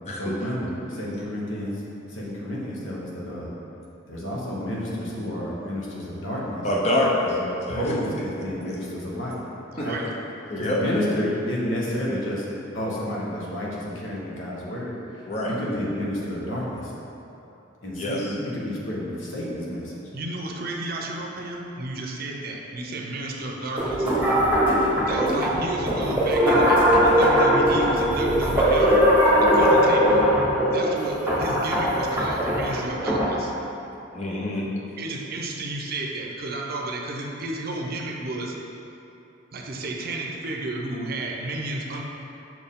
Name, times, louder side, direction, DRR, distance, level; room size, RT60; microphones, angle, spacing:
voice 1, 0.2-1.8 2.1-3.5 4.1-6.7 7.4-9.4 9.7-10.0 10.6-12.5 12.7-16.9 17.8-19.9, equal, 80° left, -5 dB, 1.2 m, -30 dB
voice 2, 6.6-7.2 7.7-7.8 8.7-8.8 9.8-9.9 10.5-10.8 15.3-15.5 18.0-18.2 34.1-34.6, left 1 dB, 35° left, -4 dB, 0.8 m, -25 dB
voice 3, 9.7-10.1 20.1-24.1 24.4-29.0 29.4-30.3 30.7-33.5 35.0-38.6 39.5-42.0, right 2 dB, 50° right, 0 dB, 0.6 m, -32 dB
sound 1, 23.8-33.4, equal, 10° right, 1.1 m, -20 dB
5.9 x 4.4 x 3.7 m, 2.9 s
head